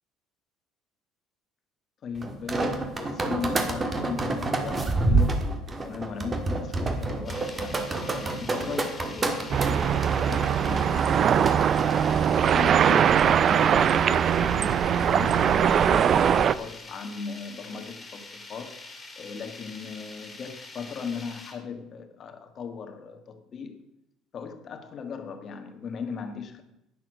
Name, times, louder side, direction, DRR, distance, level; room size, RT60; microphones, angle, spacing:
voice 1, 2.0-5.5 5.8-7.9 8.1-18.8 19.2-23.8 24.3-26.6, left 5 dB, 35° left, 1.6 m, -38 dB
sound 1, 2.2-12.3, right 2 dB, 20° right, 1.6 m, -28 dB
sound 2, 7.3-21.5, left 3 dB, 15° left, 2.9 m, -45 dB
sound 3, 9.5-16.5, right 8 dB, 35° right, 0.5 m, -21 dB
11.0 x 10.0 x 6.4 m
cardioid pair, 155°, 0 cm